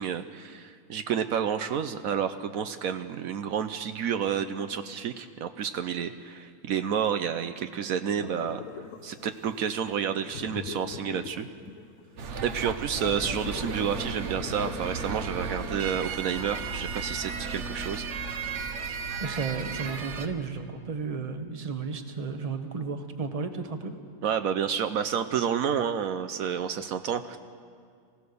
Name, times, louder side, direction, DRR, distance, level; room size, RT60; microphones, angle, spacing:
voice 1, 0.0-8.6 9.0-11.5 12.4-18.0 24.2-27.4, right 8 dB, 75° right, 9 dB, 1.1 m, -30 dB
sound 1, 8.2-16.6, left 7 dB, 75° left, 1.3 m, -43 dB
sound 2, 12.2-20.3, right 5 dB, 55° right, 1.3 m, -35 dB
voice 2, 19.2-23.9, right 5 dB, 25° right, 7 dB, 1.2 m, -33 dB
23.5 x 16.0 x 6.9 m, 2.1 s
omnidirectional pair, 1.5 m